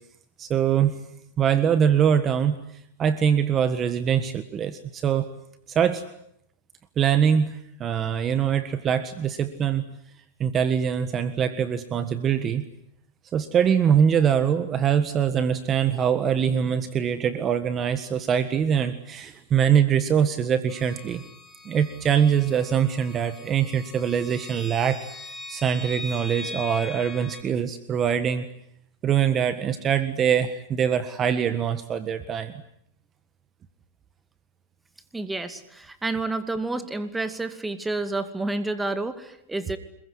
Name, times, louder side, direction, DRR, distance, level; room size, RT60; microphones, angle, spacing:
voice 1, 0.4-1.0 1.4-2.6 3.0-5.3 5.7-6.1 7.0-9.8 10.4-12.6 13.3-21.2 21.6-25.1 25.5-28.5 29.0-32.5, right 8 dB, 30° right, 11 dB, 1.6 m, -23 dB
sound 1, 20.7-27.4, left 2 dB, 10° left, 5.0 m, -41 dB
voice 2, 35.1-39.8, right 2 dB, 10° right, 10 dB, 2.5 m, -29 dB
26.5 x 22.0 x 9.9 m, 0.75 s
hypercardioid pair, 120°, 0 cm